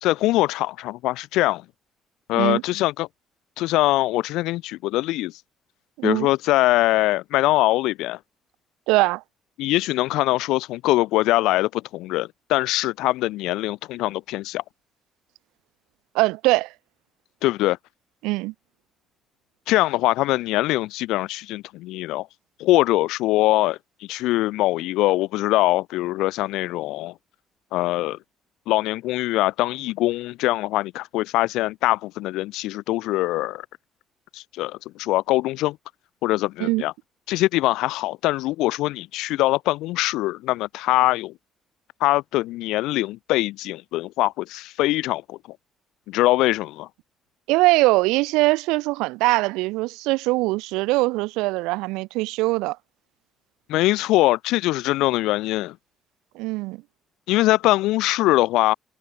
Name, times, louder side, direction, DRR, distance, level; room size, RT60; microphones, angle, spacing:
voice 1, 0.0-1.6 2.3-3.1 3.6-5.4 6.0-8.2 9.6-14.6 17.4-17.8 19.7-22.3 22.6-23.8 24.1-27.1 27.7-28.2 28.7-33.7 34.3-35.8 36.2-36.9 37.3-41.3 42.0-45.4 46.1-46.9 53.7-55.7 57.3-58.7, left 17 dB, 65° left, 3.8 m, -22 dB
voice 2, 8.9-9.2 16.1-16.7 18.2-18.5 36.6-36.8 47.5-52.8 56.3-56.8, right 22 dB, 65° right, 3.1 m, -22 dB
figure-of-eight pair, 45°, 0 cm